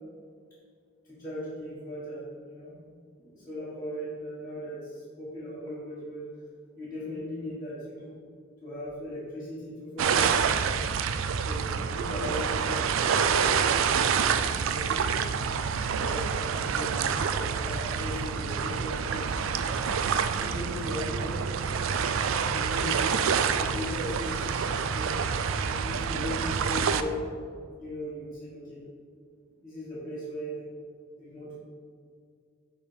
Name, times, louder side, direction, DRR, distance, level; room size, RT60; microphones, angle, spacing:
voice 1, 1.0-2.8 3.2-6.2 6.8-8.1 8.6-10.9 11.4-15.3 15.9-19.4 20.2-21.4 22.5-23.1 23.6-27.2 27.8-28.8 29.6-30.6 31.2-31.6, equal, 15° left, -12 dB, 1.6 m, -38 dB
sound 1, 10.0-27.0, right 6 dB, 75° right, 0.3 m, -27 dB
7.4 x 3.4 x 5.0 m, 2.2 s
head